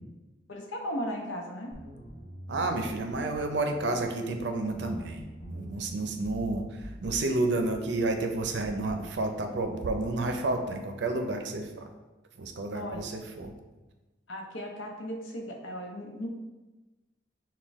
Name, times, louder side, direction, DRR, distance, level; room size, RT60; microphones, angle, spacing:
voice 1, 0.5-1.7 12.7-13.1 14.3-16.3, equal, 85° left, 1 dB, 0.8 m, -36 dB
sound 1, 1.7-9.1, equal, 45° left, 1.1 m, -45 dB
voice 2, 2.5-11.7 12.4-13.5, right 2 dB, 65° right, 5 dB, 0.5 m, -30 dB
6.1 x 2.2 x 3.5 m, 1.1 s
head